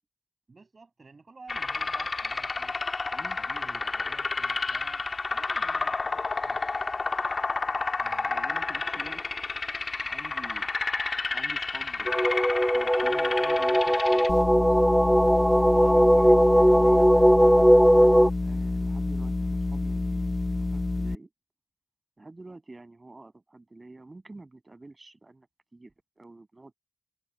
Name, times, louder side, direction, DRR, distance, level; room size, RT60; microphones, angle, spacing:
voice 1, 0.5-2.8 3.2-6.7 8.0-8.9, right 3 dB, 70° right, 6.1 m, -52 dB
sound 1, 1.5-14.3, left 3 dB, 75° left, 1.7 m, -30 dB
voice 2, 8.3-9.2 10.0-10.7 11.3-12.3 12.7-15.1 15.8-17.1 18.4-21.3 22.2-25.5 25.7-26.8, right 2 dB, 45° right, 7.3 m, -48 dB
sound 2, 12.1-18.3, equal, ahead, 0.4 m, -19 dB
sound 3, 14.3-21.1, left 2 dB, 45° left, 0.7 m, -28 dB
wide cardioid pair, 55°, 0 cm